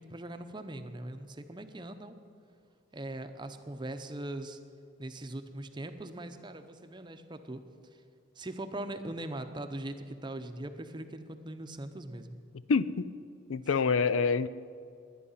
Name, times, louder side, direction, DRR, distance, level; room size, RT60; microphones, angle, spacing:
voice 1, 0.0-2.2 2.9-4.6 5.0-7.6 8.4-12.4, right 1 dB, 25° right, 8 dB, 0.7 m, -41 dB
voice 2, 12.7-13.1 13.5-14.5, left 5 dB, 90° left, 16 dB, 0.5 m, -26 dB
21.5 x 9.6 x 5.6 m, 2.4 s
head